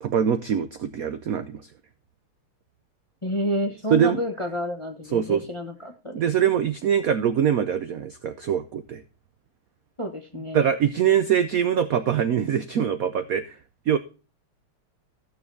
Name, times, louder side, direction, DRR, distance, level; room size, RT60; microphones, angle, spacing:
voice 1, 0.0-1.6 3.9-4.2 5.1-5.4 6.1-9.0 10.5-13.6 13.9-14.0, right 8 dB, 75° right, 10 dB, 0.8 m, -23 dB
voice 2, 3.2-6.2 10.0-10.7, left 1 dB, 20° left, 4 dB, 0.8 m, -30 dB
15.0 x 6.8 x 2.6 m, 0.33 s
omnidirectional pair, 2.4 m